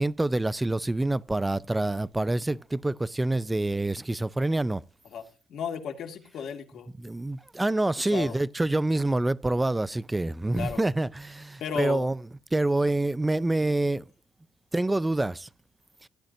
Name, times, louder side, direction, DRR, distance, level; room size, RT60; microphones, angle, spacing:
voice 1, 0.0-4.8 7.0-12.2 12.5-14.0 14.7-15.5 16.0-16.1, right 2 dB, 10° right, 0.4 m, -26 dB
voice 2, 5.5-6.9 8.0-8.4 10.5-10.8 11.6-12.1, left 7 dB, 60° left, 2.1 m, -34 dB
16.0 x 10.5 x 2.6 m
cardioid pair, 120°, 0 cm